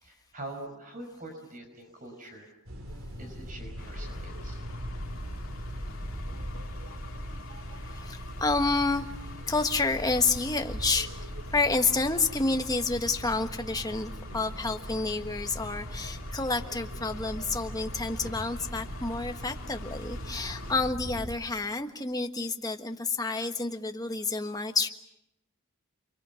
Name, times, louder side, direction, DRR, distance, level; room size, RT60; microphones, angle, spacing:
voice 1, 0.0-2.5 3.2-4.6, right 1 dB, 40° right, 4 dB, 5.4 m, -44 dB
sound 1, 2.7-21.4, equal, 70° right, 3.0 m, -39 dB
sound 2, 3.8-20.9, left 4 dB, 70° left, 2.3 m, -49 dB
voice 2, 7.8-9.0 9.5-24.9, left 3 dB, 15° left, 6 dB, 1.4 m, -29 dB
29.0 x 24.0 x 7.1 m, 0.84 s
head